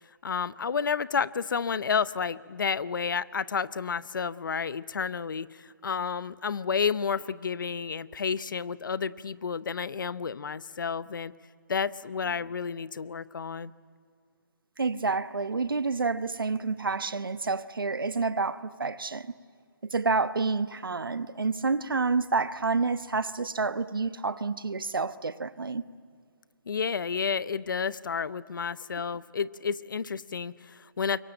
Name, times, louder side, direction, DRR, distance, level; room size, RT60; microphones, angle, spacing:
voice 1, 0.2-11.3 11.7-13.7 26.7-31.2, left 6 dB, 65° left, 0.8 m, -31 dB
voice 2, 14.8-19.3 19.8-25.8, right 4 dB, 85° right, 1.1 m, -29 dB
26.0 x 23.0 x 9.0 m
figure-of-eight pair, 145°, 11 cm